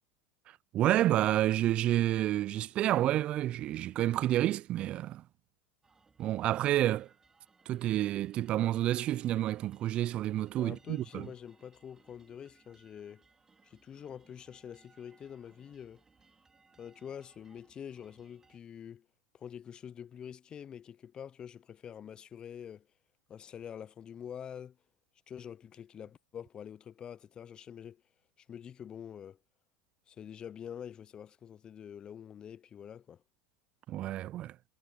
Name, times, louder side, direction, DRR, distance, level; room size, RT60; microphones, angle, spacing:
voice 1, 0.7-5.2 6.2-7.1 7.7-11.3 33.9-34.6, right 13 dB, 45° right, 0.4 m, -29 dB
sound 1, 5.8-18.6, right 4 dB, 20° right, 3.1 m, -66 dB
voice 2, 10.6-13.2 13.6-16.0 16.8-19.1 19.3-22.9 23.3-24.8 25.3-28.0 28.4-29.4 30.1-33.2, left 8 dB, 35° left, 0.6 m, -46 dB
hypercardioid pair, 90°, 3 cm